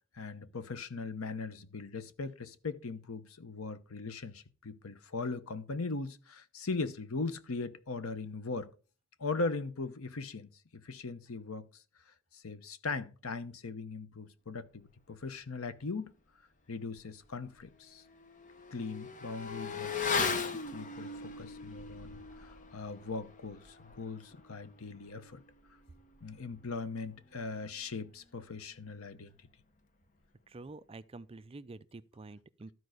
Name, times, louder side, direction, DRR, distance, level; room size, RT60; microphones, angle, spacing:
voice 1, 0.1-8.7 9.2-11.8 12.3-16.1 16.7-18.0 18.7-25.4 26.2-29.3, left 3 dB, 85° left, 0.9 m, -39 dB
Motorcycle / Accelerating revving vroom, 17.0-17.1 17.5-27.5 27.7-27.8, left 5 dB, 35° left, 0.9 m, -39 dB
voice 2, 30.5-32.7, right 3 dB, 25° right, 0.4 m, -48 dB
13.0 x 4.7 x 6.4 m
head